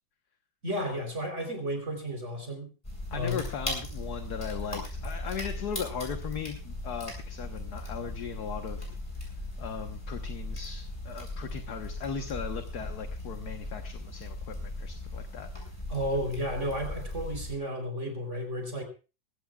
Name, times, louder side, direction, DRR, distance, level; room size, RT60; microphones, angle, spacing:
voice 1, 0.6-2.7 3.1-3.4 15.9-18.8, equal, 40° right, 4 dB, 4.2 m, -32 dB
sound 1, 2.8-17.5, left 2 dB, 15° left, 6.5 m, -38 dB
voice 2, 3.1-8.9 9.6-15.5, left 6 dB, 60° left, 6 dB, 1.7 m, -38 dB
21.5 x 17.0 x 2.4 m, 0.33 s
omnidirectional pair, 2.0 m